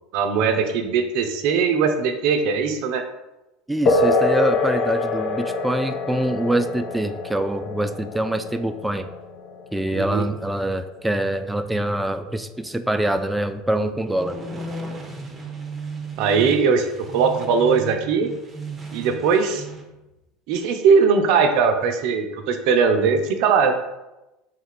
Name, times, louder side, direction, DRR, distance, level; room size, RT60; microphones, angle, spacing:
voice 1, 0.1-3.0 9.9-10.2 16.2-18.3 18.9-19.7 20.5-23.7, right 5 dB, 65° right, 7 dB, 0.5 m, -20 dB
voice 2, 3.7-9.1 9.7-14.4, right 1 dB, 5° right, 9 dB, 0.3 m, -25 dB
sound 1, 3.9-11.9, left 3 dB, 55° left, 0.6 m, -25 dB
sound 2, 14.2-19.9, right 3 dB, 25° right, 0.8 m, -35 dB
3.7 x 2.3 x 4.4 m, 0.98 s
hypercardioid pair, 85°, 0 cm